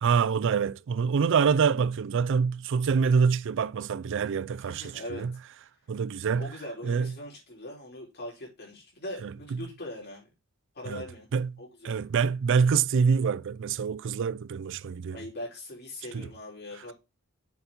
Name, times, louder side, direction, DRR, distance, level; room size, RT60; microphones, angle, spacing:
voice 1, 0.0-5.3 5.9-6.5 6.8-7.1 9.2-9.3 10.9-11.0 11.3-11.5 11.8-15.2 16.1-16.3, right 6 dB, 60° right, 0.4 m, -26 dB
voice 2, 4.6-5.3 6.4-10.3 10.7-11.3 11.6-12.0 15.1-16.9, left 1 dB, 50° left, 3.7 m, -41 dB
7.0 x 4.0 x 5.2 m
head